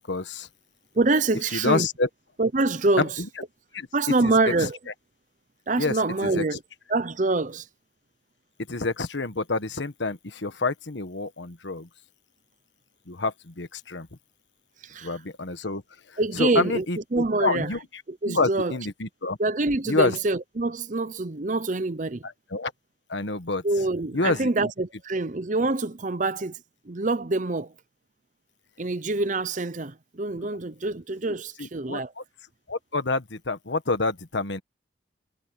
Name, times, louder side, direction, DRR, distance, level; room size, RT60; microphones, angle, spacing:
voice 1, 0.1-0.5 1.5-2.1 3.0-3.3 3.7-3.9 4.2-4.3 4.6-4.7 5.8-6.4 8.7-11.9 13.1-14.1 15.0-15.8 16.1-19.4 19.8-20.2 22.2-22.7 23.1-23.6 24.1-24.7 31.6-32.2 32.7-34.6, left 3 dB, 75° left, 1.4 m, -28 dB
voice 2, 0.9-1.9 2.4-3.1 3.9-4.8 5.7-6.6 6.9-7.7 14.8-15.1 16.2-16.8 17.1-17.7 18.2-18.7 19.4-22.2 23.6-26.6 26.8-27.7 28.8-32.1, right 2 dB, 40° right, 0.8 m, -25 dB
head